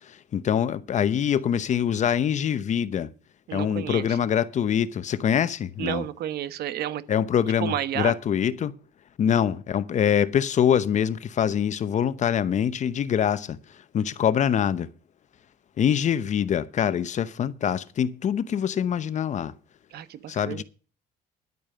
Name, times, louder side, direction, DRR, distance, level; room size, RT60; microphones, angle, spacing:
voice 1, 0.0-3.1 3.5-6.0 7.1-8.7 9.2-14.9 15.8-19.5 20.3-20.6, left 9 dB, 45° left, 0.8 m, -24 dB
voice 2, 3.5-4.2 5.8-7.0 7.6-8.1 19.9-20.6, right 11 dB, 70° right, 1.1 m, -31 dB
11.0 x 8.9 x 6.7 m
cardioid pair, 110°, 17 cm